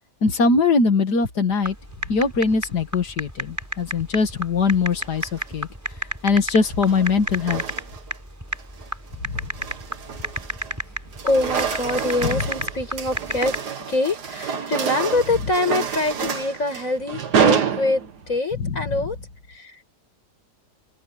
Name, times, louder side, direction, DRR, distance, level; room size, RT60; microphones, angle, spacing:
voice 1, 0.2-1.7 2.1-5.7 6.2-7.6 9.2-9.5 12.2-12.4 18.5-19.0, left 4 dB, 80° left, 2.5 m, -21 dB
sound 1, 1.7-13.6, equal, 10° right, 6.7 m, -31 dB
sound 2, 5.0-5.5 6.6-8.2 8.6-8.9 9.4-10.8 11.1-18.4, right 7 dB, 80° right, 2.2 m, -27 dB
voice 2, 11.2-13.5 13.9-19.2 19.5-19.8, left 2 dB, 50° left, 6.2 m, -24 dB
open air
omnidirectional pair, 1.7 m